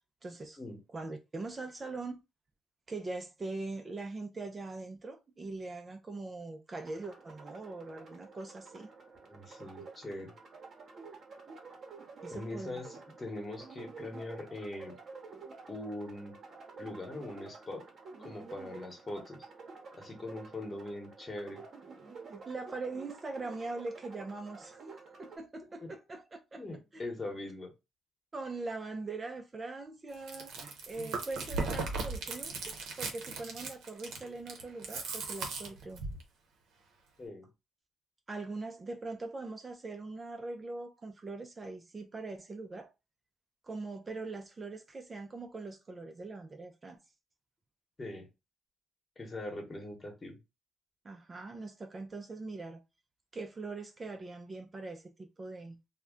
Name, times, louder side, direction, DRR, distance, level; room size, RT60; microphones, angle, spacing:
voice 1, 0.2-0.6 0.9-2.2 2.9-8.9 12.2-12.8 22.3-24.8 25.2-26.6 26.9-27.0 28.3-30.5 30.9-36.0 38.3-42.9 43.6-47.0 51.0-52.8 53.3-55.8, right 3 dB, 30° right, 0.4 m, -42 dB
sound 1, 6.7-25.4, right 4 dB, 55° right, 0.8 m, -50 dB
voice 2, 9.3-10.3 12.3-15.0 15.7-16.4 16.8-17.8 18.2-19.5 20.0-21.6 25.8-25.9 26.5-27.7 37.2-37.5 48.0-48.3 49.2-50.4, left 2 dB, 25° left, 1.1 m, -41 dB
Chewing mastication, 30.1-36.2, right 4 dB, 80° right, 0.7 m, -38 dB
2.3 x 2.1 x 3.5 m
cardioid pair, 90°, 0 cm